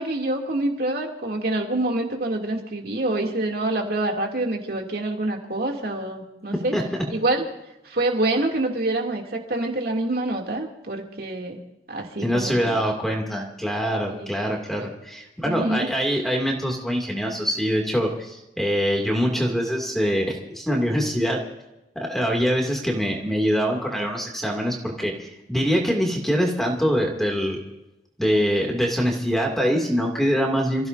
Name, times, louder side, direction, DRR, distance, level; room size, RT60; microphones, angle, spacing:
voice 1, 0.0-6.7 7.1-7.4 7.8-11.6 11.9-12.8 14.1-14.3 14.8-14.9 15.5-15.9, right 2 dB, 60° right, 1 dB, 2.7 m, -26 dB
voice 2, 6.7-7.0 12.2-21.4 22.0-27.6 28.2-30.9, equal, ahead, 0 dB, 2.5 m, -24 dB
28.5 x 15.5 x 2.7 m, 0.93 s
head